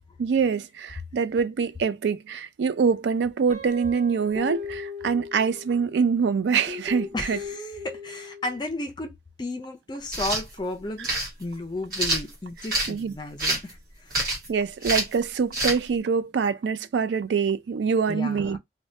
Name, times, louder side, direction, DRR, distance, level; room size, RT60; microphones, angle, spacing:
voice 1, 0.2-7.4 12.9-13.1 14.3-18.6, right 6 dB, 75° right, 0.3 m, -25 dB
Guitar, 3.5-5.9 6.6-8.6, left 4 dB, 35° right, 0.7 m, -38 dB
voice 2, 7.1-11.1 11.4-14.1 18.1-18.6, left 2 dB, 25° left, 0.4 m, -34 dB
sound 1, 10.0-10.4 11.0-11.3 11.9-12.9 13.4-13.7 14.1-14.5 14.8-15.1 15.5-15.8, right 1 dB, 50° right, 1.3 m, -26 dB
2.6 x 2.1 x 3.1 m
head